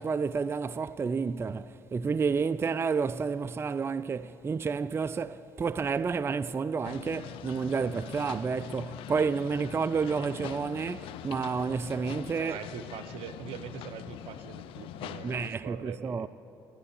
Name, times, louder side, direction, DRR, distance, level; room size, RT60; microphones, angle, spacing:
voice 1, 0.0-12.6 15.2-16.3, right 5 dB, 25° right, 0.4 m, -30 dB
sound 1, 6.8-15.5, left 12 dB, 70° left, 0.5 m, -43 dB
voice 2, 12.3-16.3, right 8 dB, 70° right, 0.9 m, -43 dB
13.0 x 11.0 x 8.3 m
supercardioid pair, 65°, 10 cm